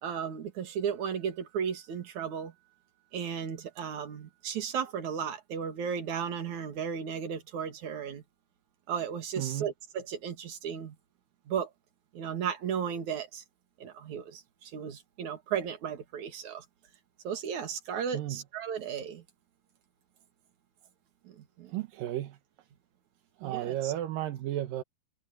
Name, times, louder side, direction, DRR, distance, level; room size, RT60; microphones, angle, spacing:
voice 1, 0.0-2.5 3.1-8.2 8.9-10.9 11.5-11.7 12.1-13.4 13.8-16.6 17.2-19.2 21.2-21.8 23.4-23.9, right 7 dB, 60° right, 3.4 m, -35 dB
voice 2, 9.4-9.7 18.1-18.4 21.7-22.4 23.4-24.8, right 13 dB, 75° right, 2.7 m, -33 dB
omnidirectional pair, 4.1 m